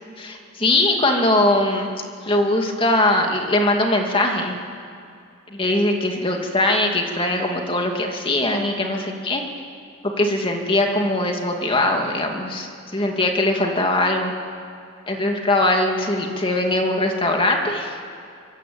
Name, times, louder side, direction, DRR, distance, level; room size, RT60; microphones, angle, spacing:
voice 1, 0.2-1.9 2.2-4.6 5.5-9.5 10.0-14.3 15.1-18.0, left 1 dB, 25° left, 2 dB, 2.4 m, -21 dB
24.0 x 23.0 x 8.7 m, 2.3 s
head